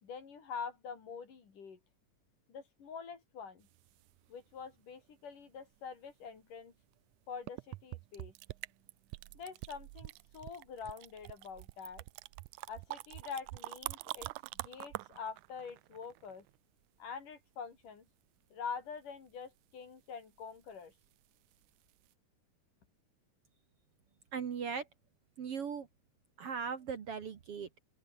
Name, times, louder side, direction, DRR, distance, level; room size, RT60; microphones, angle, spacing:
voice 1, 0.0-1.8 2.5-3.7 4.3-6.7 7.3-8.3 9.4-12.0 12.7-14.3 14.5-16.5 17.0-18.1 18.5-20.9, left 6 dB, 70° left, 5.4 m, -45 dB
sound 1, 3.7-4.6 6.9-7.0 7.5-16.6 21.5-21.7 22.1-22.2, right 20 dB, 80° right, 1.8 m, -45 dB
voice 2, 24.3-24.9 25.4-25.9 26.4-27.7, right 6 dB, 50° right, 2.2 m, -38 dB
open air
omnidirectional pair, 3.9 m